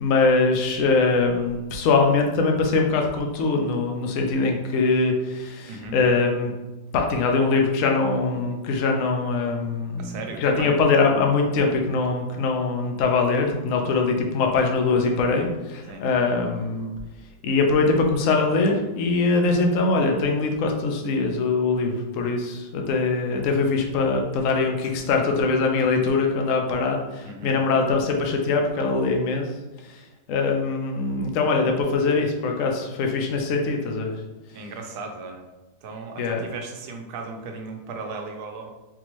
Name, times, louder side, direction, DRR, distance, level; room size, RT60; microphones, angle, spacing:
voice 1, 0.0-6.5 6.9-16.9 17.4-29.4 30.3-34.1 36.2-36.4, left 3 dB, 60° left, 2 dB, 0.9 m, -22 dB
voice 2, 5.6-6.0 10.0-10.8 15.9-16.0 27.2-27.5 34.5-35.4 35.8-38.7, right 3 dB, 70° right, 3 dB, 1.0 m, -36 dB
3.9 x 3.5 x 3.0 m, 1.1 s
omnidirectional pair, 2.0 m